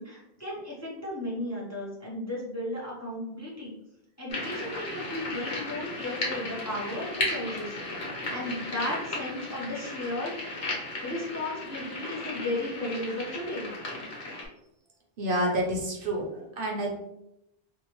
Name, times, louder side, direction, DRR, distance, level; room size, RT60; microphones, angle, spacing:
voice 1, 0.0-3.8 4.2-10.6 11.0-13.7, left 1 dB, 20° left, -5 dB, 0.5 m, -35 dB
sound 1, 4.3-14.5, left 2 dB, 75° left, 1.0 m, -35 dB
voice 2, 15.2-17.0, right 1 dB, 65° right, -1 dB, 0.8 m, -29 dB
2.6 x 2.0 x 2.9 m, 0.83 s
omnidirectional pair, 1.0 m